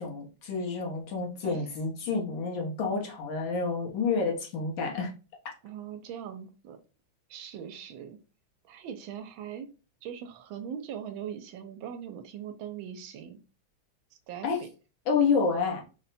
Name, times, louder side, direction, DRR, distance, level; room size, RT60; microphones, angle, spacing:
voice 1, 0.0-5.1 14.4-14.6 15.1-15.8, left 5 dB, 80° left, -1 dB, 1.9 m, -29 dB
voice 2, 1.4-1.8 5.6-6.8 7.3-8.2 8.6-9.7 10.0-13.4 14.1-14.7, right 8 dB, 85° right, 7 dB, 1.4 m, -41 dB
4.2 x 2.2 x 4.0 m, 0.33 s
omnidirectional pair, 2.1 m